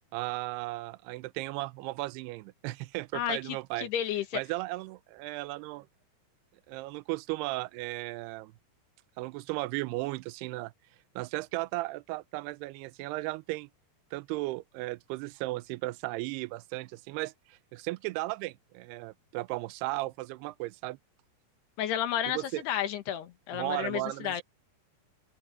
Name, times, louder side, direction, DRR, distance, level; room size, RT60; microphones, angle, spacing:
voice 1, 0.1-3.9 4.3-5.9 6.7-8.5 9.2-10.7 11.2-13.7 14.1-21.0 22.3-22.6 23.5-24.4, right 20 dB, 85° right, 2.7 m, -35 dB
voice 2, 3.1-4.4 21.8-24.4, left 11 dB, 85° left, 3.6 m, -32 dB
omnidirectional pair, 4.6 m